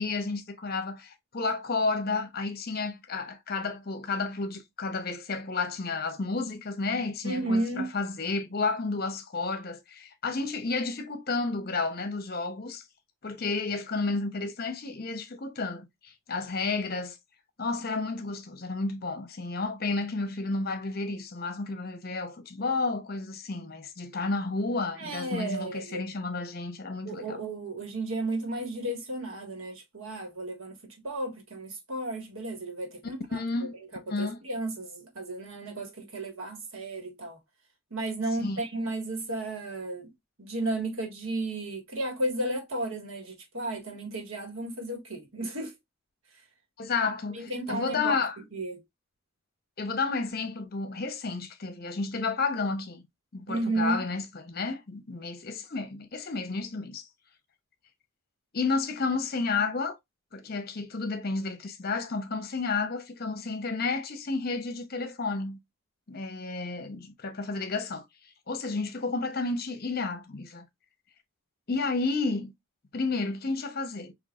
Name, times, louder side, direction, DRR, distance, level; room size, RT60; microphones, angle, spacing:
voice 1, 0.0-12.8 13.2-17.2 17.6-27.4 33.3-33.7 34.1-34.4 38.4-38.6 46.8-48.4 49.8-53.0 53.3-57.1 58.5-60.0 60.3-65.6 66.1-68.0 68.5-70.7 71.7-72.5 72.9-74.1, left 3 dB, 45° left, 0.9 m, -31 dB
voice 2, 7.2-7.9 25.0-26.1 27.1-30.8 31.0-33.4 34.1-37.4 37.9-40.1 40.4-45.7 47.3-48.2 48.5-48.8 53.5-54.0, right 2 dB, 75° right, 1.9 m, -33 dB
6.0 x 3.0 x 2.5 m
head